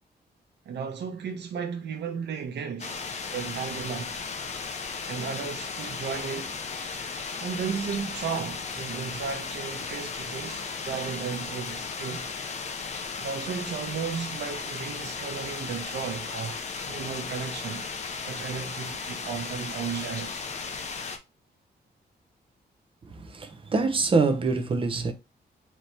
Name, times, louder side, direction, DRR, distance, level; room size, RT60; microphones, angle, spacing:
voice 1, 0.7-4.2 5.0-6.6 7.4-12.3 13.2-17.9 18.2-20.5, right 6 dB, 90° right, 0.9 m, -34 dB
sound 1, 2.8-21.2, left 5 dB, 40° left, 0.6 m, -35 dB
voice 2, 23.1-25.1, right 4 dB, 30° right, 0.7 m, -25 dB
4.2 x 2.9 x 3.3 m
wide cardioid pair, 155°, 17 cm